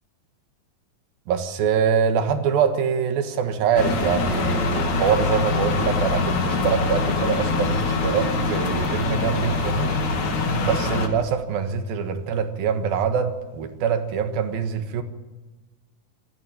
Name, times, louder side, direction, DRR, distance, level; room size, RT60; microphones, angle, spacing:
voice 1, 1.3-9.9 10.6-15.0, right 7 dB, 80° right, 3.3 m, -24 dB
sound 1, 3.8-11.1, left 3 dB, 55° left, 3.4 m, -24 dB
27.5 x 12.5 x 9.0 m
omnidirectional pair, 4.1 m